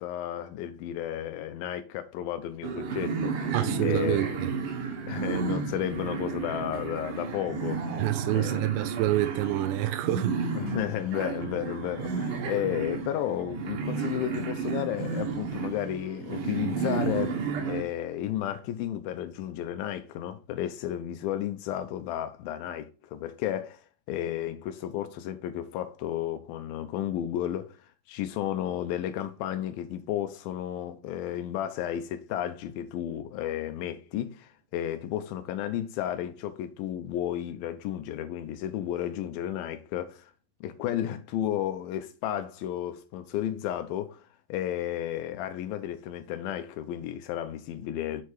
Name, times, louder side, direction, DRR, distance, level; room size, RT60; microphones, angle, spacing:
voice 1, 0.0-3.5 3.8-4.4 5.1-7.9 8.3-8.7 10.5-17.4 17.7-27.8 28.1-40.3 40.6-48.2, left 11 dB, 90° left, 2.1 m, -33 dB
sound 1, 2.6-17.8, right 5 dB, 60° right, 2.4 m, -32 dB
voice 2, 3.5-4.5 8.0-10.4, right 15 dB, 90° right, 2.7 m, -27 dB
7.1 x 4.6 x 4.6 m
omnidirectional pair, 4.8 m